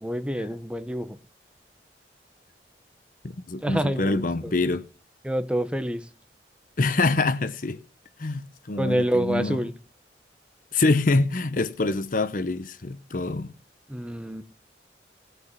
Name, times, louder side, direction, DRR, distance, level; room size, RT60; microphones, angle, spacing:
voice 1, 0.0-1.2 3.6-4.5 5.2-6.1 8.8-9.8 13.9-14.4, equal, 5° right, 1.0 m, -27 dB
voice 2, 3.2-4.9 6.8-7.8 8.2-9.6 10.7-13.5, left 3 dB, 50° left, 0.8 m, -25 dB
19.0 x 6.8 x 7.4 m
head